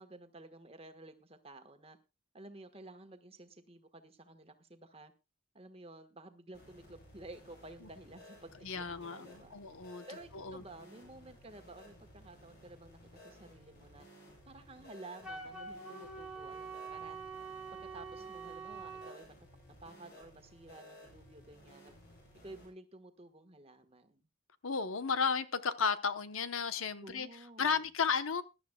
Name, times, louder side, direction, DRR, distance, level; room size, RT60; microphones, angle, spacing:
voice 1, 0.0-2.0 2.3-5.1 5.5-9.6 10.1-14.1 14.4-17.2 17.8-19.3 19.8-21.9 22.4-24.3 27.0-27.8, right 2 dB, 30° right, 8 dB, 1.3 m, -53 dB
sound 1, 6.5-22.7, left 1 dB, 50° left, 7.7 m, -57 dB
voice 2, 8.6-10.0 10.3-10.6 24.6-27.3 27.6-28.4, left 5 dB, 90° left, 11 dB, 1.0 m, -33 dB
Wind instrument woodwind instrument, 15.2-19.2, right 4 dB, 5° right, 1.9 m, -45 dB
21.5 x 11.5 x 2.3 m, 0.28 s
head